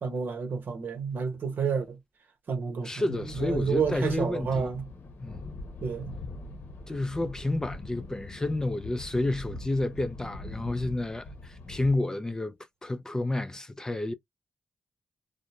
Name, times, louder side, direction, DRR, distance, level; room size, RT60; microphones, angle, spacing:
voice 1, 0.0-2.0 2.5-2.9 3.4-4.8 5.8-6.1, right 5 dB, 65° right, 0.9 m, -29 dB
voice 2, 2.8-4.7 5.2-5.4 6.9-12.5 12.8-14.1, left 2 dB, 15° left, 0.4 m, -30 dB
sound 1, 3.1-12.0, left 3 dB, 65° left, 0.9 m, -42 dB
2.5 x 2.1 x 3.0 m
cardioid pair, 75°, 4 cm